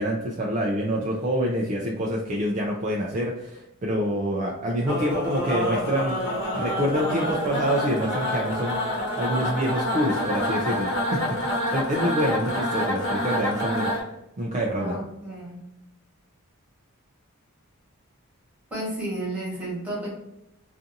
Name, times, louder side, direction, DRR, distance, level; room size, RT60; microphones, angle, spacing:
voice 1, 0.0-6.2 6.5-8.8 9.1-13.9 14.4-15.0, equal, 35° right, -2 dB, 0.3 m, -26 dB
sound 1, 4.9-14.0, equal, 60° left, 0.9 m, -27 dB
voice 2, 14.8-15.6 18.7-20.1, right 1 dB, 5° right, -6 dB, 1.2 m, -32 dB
2.5 x 2.5 x 2.6 m, 0.86 s
head